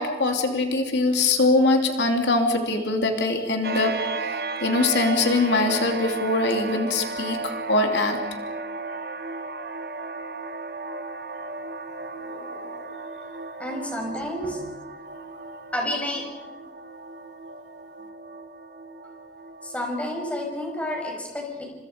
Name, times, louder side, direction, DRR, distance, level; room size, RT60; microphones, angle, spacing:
voice 1, 0.0-8.2 12.2-12.9, left 2 dB, 85° left, 4 dB, 2.9 m, -23 dB
sound 1, 3.6-20.9, right 3 dB, 60° right, 1.2 m, -35 dB
voice 2, 13.6-14.6 15.7-16.3 19.6-21.6, left 1 dB, 10° left, 1 dB, 6.1 m, -30 dB
30.0 x 26.0 x 5.2 m, 1.2 s
head